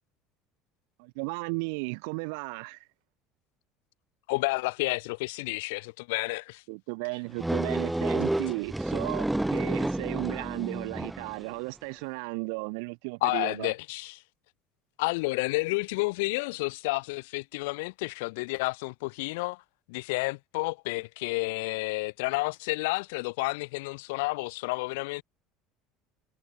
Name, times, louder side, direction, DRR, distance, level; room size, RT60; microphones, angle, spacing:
voice 1, 1.0-2.9 6.7-13.7, right 34 dB, 80° right, 4.3 m, -35 dB
voice 2, 4.3-6.6 13.2-14.2 15.0-19.6 19.9-25.2, left 25 dB, 90° left, 2.5 m, -30 dB
sound 1, 7.4-11.4, right 1 dB, 5° right, 3.0 m, -30 dB
cardioid pair, 145°, 0 cm